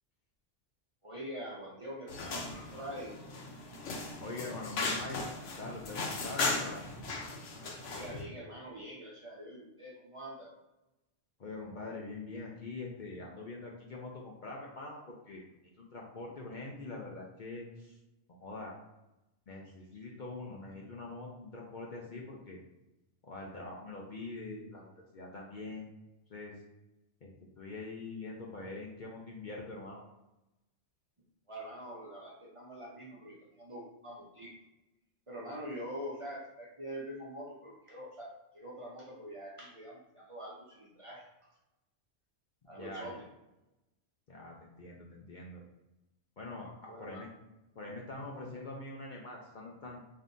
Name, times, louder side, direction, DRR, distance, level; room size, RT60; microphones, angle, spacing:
voice 1, 1.0-3.1 7.9-10.5 31.5-34.5 35.3-38.3 38.5-41.2 42.7-43.2 46.9-47.2, equal, 35° right, -5 dB, 0.6 m, -44 dB
sound 1, 2.1-8.2, left 3 dB, 80° left, 1.1 m, -37 dB
voice 2, 4.2-6.9 11.4-15.5 15.8-18.0 18.3-18.7 19.5-22.6 23.2-25.9 26.3-26.6 27.2-30.0 42.7-43.2 44.3-45.6 46.4-47.3 47.8-50.0, left 2 dB, 50° left, -2 dB, 0.6 m, -44 dB
5.2 x 2.8 x 2.6 m, 0.96 s
omnidirectional pair, 1.2 m